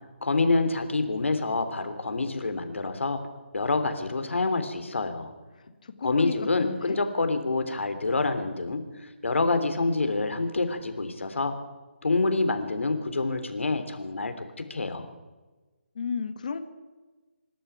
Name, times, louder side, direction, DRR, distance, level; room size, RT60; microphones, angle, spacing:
voice 1, 0.2-3.2 3.5-5.3 6.0-11.5 12.0-14.4 14.7-15.1, left 3 dB, 80° left, 8 dB, 3.4 m, -27 dB
voice 2, 5.8-7.0 15.9-16.6, left 5 dB, 40° left, 10 dB, 1.7 m, -33 dB
25.0 x 12.5 x 9.3 m, 1.3 s
hypercardioid pair, 175°, 7 cm